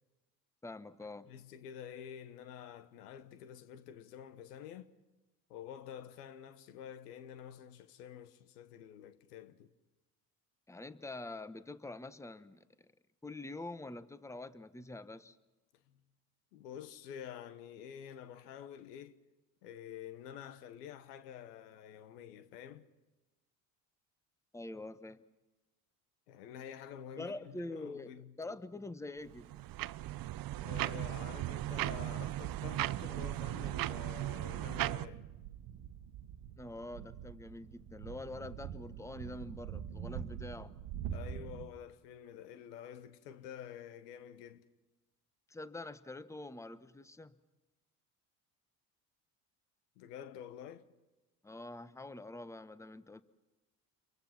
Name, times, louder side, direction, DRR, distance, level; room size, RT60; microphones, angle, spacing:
voice 1, 0.6-1.3 10.7-12.9 13.2-15.4 24.5-25.2 27.2-29.6 36.6-40.8 45.5-47.3 51.4-53.2, left 2 dB, 5° left, 1.1 m, -45 dB
voice 2, 1.3-4.9 5.5-9.7 16.5-19.2 19.6-22.9 26.3-28.3 30.6-35.2 41.1-44.6 50.0-50.9, left 9 dB, 85° left, 1.2 m, -49 dB
sound 1, 29.3-35.1, right 15 dB, 50° right, 0.7 m, -37 dB
sound 2, 35.0-41.7, right 9 dB, 65° right, 1.3 m, -45 dB
29.0 x 23.5 x 5.9 m
hypercardioid pair, 70°, 46 cm